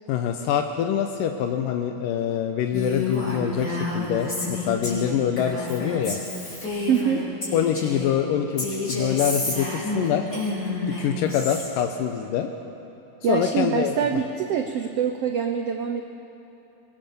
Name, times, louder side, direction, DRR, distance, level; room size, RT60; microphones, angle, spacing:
voice 1, 0.1-6.2 7.5-10.3 11.0-12.5 13.3-14.0, left 9 dB, 80° left, 5 dB, 2.5 m, -25 dB
Female speech woman speaking, 2.7-8.1 8.6-11.7, left 2 dB, 30° left, 5.1 m, -29 dB
voice 2, 6.9-7.2 13.2-16.0, right 7 dB, 75° right, 6 dB, 1.4 m, -24 dB
23.5 x 21.0 x 6.9 m, 2.9 s
omnidirectional pair, 3.9 m